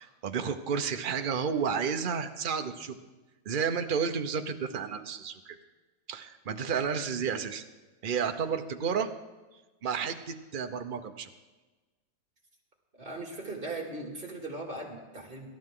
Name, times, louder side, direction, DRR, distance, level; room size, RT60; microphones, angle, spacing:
voice 1, 0.0-3.0 3.4-5.6 6.1-7.6 8.0-9.1 9.8-11.3, right 6 dB, 45° right, 7 dB, 0.6 m, -31 dB
voice 2, 13.0-15.5, right 2 dB, 30° right, 0 dB, 2.7 m, -39 dB
26.0 x 13.0 x 3.8 m, 1.2 s
omnidirectional pair, 2.0 m